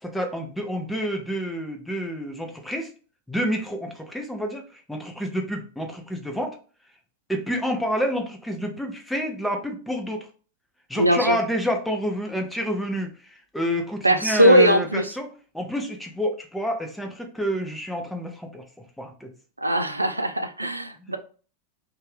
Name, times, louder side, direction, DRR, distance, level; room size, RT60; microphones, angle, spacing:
voice 1, 0.0-2.9 3.3-6.6 7.3-10.3 10.9-15.3 15.5-18.6 19.0-19.3 21.1-21.2, equal, 5° left, 3 dB, 0.6 m, -28 dB
voice 2, 11.0-11.4 14.0-15.1 19.6-21.2, equal, 85° right, 9 dB, 0.3 m, -20 dB
2.7 x 2.2 x 3.1 m, 0.39 s
figure-of-eight pair, 90°, 0 cm